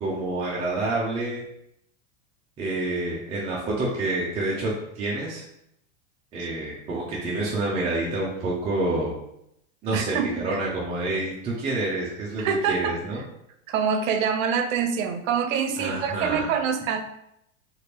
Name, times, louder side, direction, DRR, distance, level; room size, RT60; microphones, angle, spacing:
voice 1, 0.0-1.4 2.6-4.7 5.0-5.4 6.3-9.1 9.8-13.2 15.8-16.5, right 2 dB, 15° right, -4 dB, 0.4 m, -28 dB
voice 2, 9.9-10.6 12.4-13.0 13.7-17.0, right 6 dB, 85° right, 8 dB, 0.6 m, -25 dB
2.8 x 2.5 x 3.2 m, 0.78 s
supercardioid pair, 140°, 39 cm